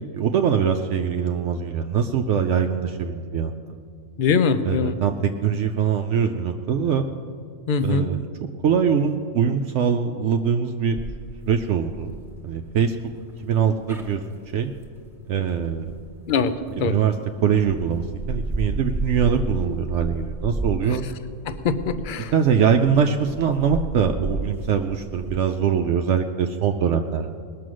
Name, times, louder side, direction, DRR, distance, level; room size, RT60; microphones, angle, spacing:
voice 1, 0.1-3.8 4.6-7.1 7.8-8.2 8.6-11.0 11.5-12.1 12.4-13.0 13.4-14.2 14.5-14.7 15.3-15.9 16.8-17.1 17.4-21.0 22.3-27.3, right 7 dB, 70° right, 5 dB, 0.9 m, -22 dB
voice 2, 4.2-5.0 7.7-8.1 16.3-16.9 20.9-21.0 21.5-22.3, left 5 dB, 50° left, 11 dB, 0.8 m, -23 dB
sound 1, 11.0-16.9 17.4-25.4, right 2 dB, ahead, 1.5 m, -33 dB
19.5 x 6.8 x 6.3 m, 2.3 s
omnidirectional pair, 1.3 m